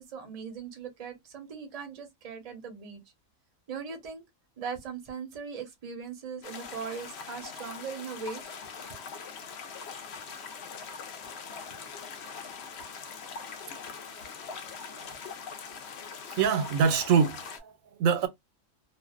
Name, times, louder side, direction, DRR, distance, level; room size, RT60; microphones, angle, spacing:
voice 1, 0.0-3.0 3.7-4.2 4.6-8.5, right 6 dB, 40° right, 0.6 m, -39 dB
sound 1, 6.4-17.6, left 6 dB, 65° left, 0.7 m, -42 dB
voice 2, 16.3-18.3, right 6 dB, 85° right, 1.0 m, -25 dB
2.4 x 2.1 x 2.3 m
omnidirectional pair, 1.4 m